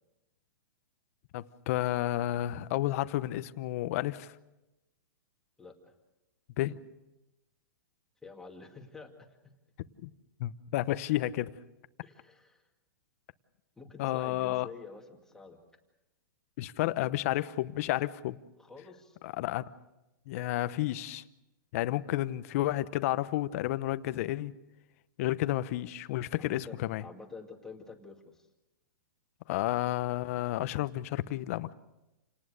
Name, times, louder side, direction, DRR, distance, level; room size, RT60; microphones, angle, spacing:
voice 1, 1.3-4.4 6.6-6.8 10.0-10.1 10.4-11.6 14.0-14.7 16.6-18.4 19.2-19.6 20.3-21.2 21.7-24.5 25.2-27.0 29.5-31.7, left 15 dB, 45° left, 14 dB, 0.9 m, -31 dB
voice 2, 5.6-5.9 8.2-9.4 12.0-12.6 13.8-15.6 18.6-19.2 26.4-28.5, left 4 dB, 5° left, 2 dB, 2.2 m, -49 dB
29.0 x 18.5 x 6.6 m, 0.98 s
hypercardioid pair, 150°, 11 cm